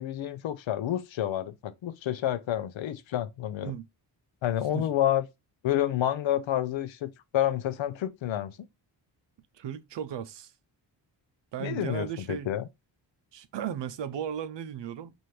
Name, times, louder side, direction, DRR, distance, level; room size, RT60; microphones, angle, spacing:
voice 1, 0.0-3.7 4.4-5.3 5.6-8.6 11.6-12.6, left 12 dB, 65° left, 0.6 m, -29 dB
voice 2, 9.5-10.5 11.5-12.5 13.3-15.1, right 9 dB, 60° right, 0.6 m, -35 dB
4.2 x 2.6 x 3.2 m
cardioid pair, 65°, 49 cm